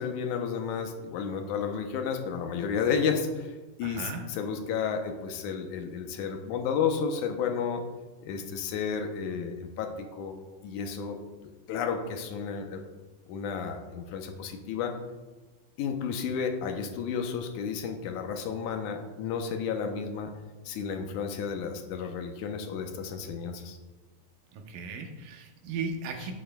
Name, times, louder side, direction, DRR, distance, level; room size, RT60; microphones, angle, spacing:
voice 1, 0.0-7.8 8.2-10.4 10.6-12.8 13.3-14.9 15.8-20.3 20.7-23.8, left 6 dB, 75° left, 5 dB, 2.2 m, -32 dB
voice 2, 3.8-4.2 24.5-26.3, right 4 dB, 85° right, 3 dB, 2.6 m, -36 dB
11.0 x 8.4 x 2.3 m, 1.2 s
omnidirectional pair, 3.8 m